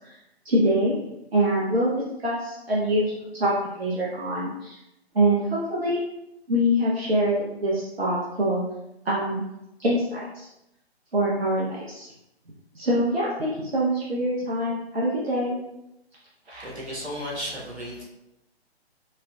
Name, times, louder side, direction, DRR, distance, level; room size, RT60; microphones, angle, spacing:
voice 1, 0.4-1.0 1.3-4.8 5.1-6.0 6.5-8.6 9.0-9.4 9.8-10.5 11.1-12.1 12.7-15.6 16.5-16.7, equal, 70° right, -6 dB, 0.8 m, -24 dB
voice 2, 16.5-18.0, equal, 90° right, -5 dB, 1.5 m, -34 dB
4.2 x 2.6 x 2.3 m, 0.89 s
figure-of-eight pair, 135°, 32 cm